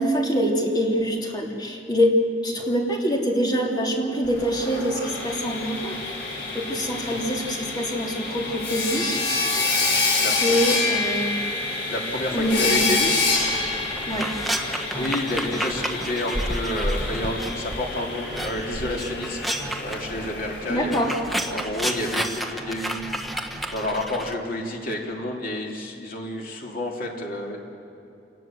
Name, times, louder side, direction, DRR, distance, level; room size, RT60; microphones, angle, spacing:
voice 1, 0.0-9.2 10.3-11.4 12.3-13.1 14.1-14.3 20.7-21.1, equal, 25° left, 0 dB, 3.2 m, -25 dB
Sawing, 4.2-22.1, left 3 dB, 70° left, 7.4 m, -28 dB
voice 2, 10.1-10.6 11.9-13.1 14.7-19.4 19.8-20.9 21.5-27.6, left 1 dB, 55° left, 0 dB, 3.2 m, -30 dB
sound 1, 12.4-17.8 18.1-24.3, right 1 dB, ahead, 1.3 m, -31 dB
27.5 x 19.0 x 7.7 m, 2.8 s
head